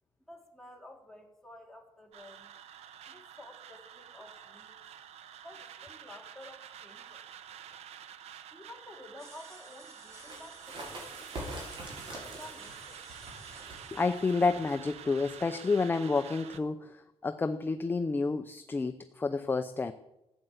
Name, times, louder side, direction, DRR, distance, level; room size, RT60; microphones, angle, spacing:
voice 1, 0.3-2.5 3.1-4.8 5.4-7.3 8.5-13.0, left 1 dB, 5° left, 1 dB, 2.5 m, -52 dB
sound 1, 2.1-16.6, right 9 dB, 80° right, 1.0 m, -49 dB
sound 2, 9.2-14.3, right 1 dB, 25° right, 4.9 m, -55 dB
sound 3, 10.1-15.4, right 1 dB, 50° right, 6.2 m, -45 dB
voice 2, 13.9-19.9, left 4 dB, 20° left, 9 dB, 0.6 m, -30 dB
15.0 x 9.0 x 8.1 m, 0.92 s
cardioid pair, 150°, 11 cm